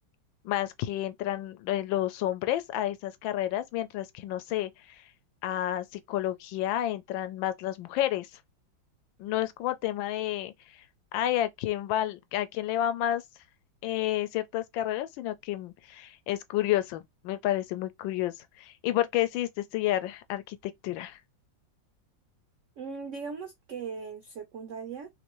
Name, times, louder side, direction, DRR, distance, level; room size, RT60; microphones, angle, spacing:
voice 1, 0.4-4.7 5.4-8.3 9.2-10.5 11.1-13.2 13.8-21.2, left 13 dB, 90° left, 1.3 m, -30 dB
voice 2, 22.8-25.1, right 5 dB, 75° right, 0.6 m, -39 dB
3.4 x 2.6 x 2.9 m
omnidirectional pair, 2.0 m